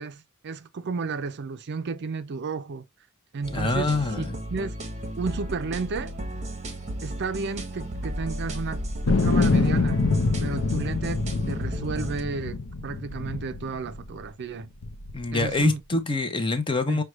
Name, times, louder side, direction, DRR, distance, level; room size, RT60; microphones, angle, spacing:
voice 1, 0.0-2.9 3.3-4.8 5.2-6.1 7.0-8.8 9.2-10.0 10.4-14.7 15.3-15.8 16.9-17.0, right 4 dB, 50° right, 0.4 m, -33 dB
sound 1, 3.4-12.2, right 1 dB, 30° right, 0.9 m, -34 dB
voice 2, 3.5-4.4 15.1-17.0, left 3 dB, 20° left, 0.6 m, -25 dB
sound 2, 9.1-14.3 14.8-15.6, left 3 dB, 65° left, 0.6 m, -26 dB
6.2 x 2.3 x 3.0 m
head